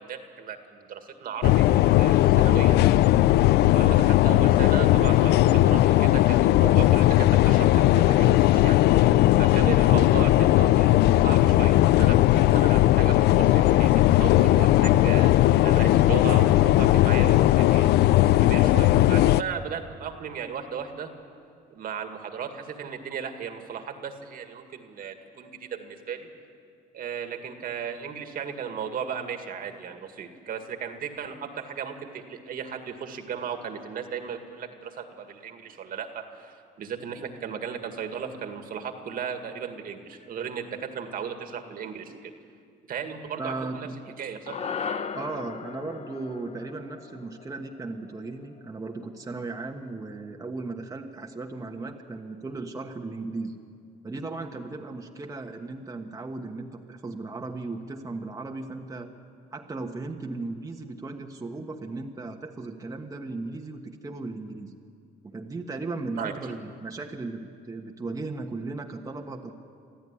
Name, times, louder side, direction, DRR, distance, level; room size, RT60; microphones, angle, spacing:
voice 1, 0.0-2.8 3.7-8.8 9.4-15.3 15.6-17.9 18.4-21.1 21.7-26.3 26.9-42.3 42.9-43.9 44.2-44.6 66.2-66.3, right 7 dB, 55° right, 6 dB, 2.1 m, -36 dB
sound 1, 1.4-19.4, left 15 dB, 75° left, 0.5 m, -18 dB
voice 2, 43.4-43.9 45.1-53.5 54.0-59.1 59.5-64.7 65.2-69.5, right 3 dB, 20° right, 1 dB, 1.4 m, -36 dB
sound 2, 44.5-48.9, left 6 dB, 40° left, 0.9 m, -37 dB
25.5 x 14.5 x 9.9 m, 2.3 s
cardioid pair, 110°, 17 cm